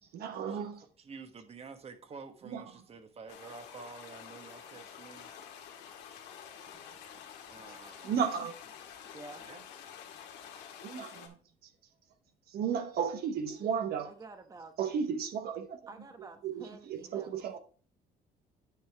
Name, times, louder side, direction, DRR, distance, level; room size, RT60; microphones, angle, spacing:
voice 1, 0.1-0.8 2.4-2.6 6.7-6.8 8.0-8.6 10.8-11.4 12.5-14.1 14.8-15.8 16.4-17.6, right 7 dB, 65° right, 1.0 m, -34 dB
voice 2, 1.0-5.3 7.5-8.1 9.4-9.6, right 5 dB, 35° right, 1.3 m, -49 dB
sound 1, 3.3-11.3, left 8 dB, 90° left, 1.7 m, -49 dB
voice 3, 9.1-9.4 14.0-14.7 15.9-17.5, right 3 dB, 20° right, 1.0 m, -49 dB
9.4 x 5.6 x 3.4 m
cardioid pair, 110°, 17 cm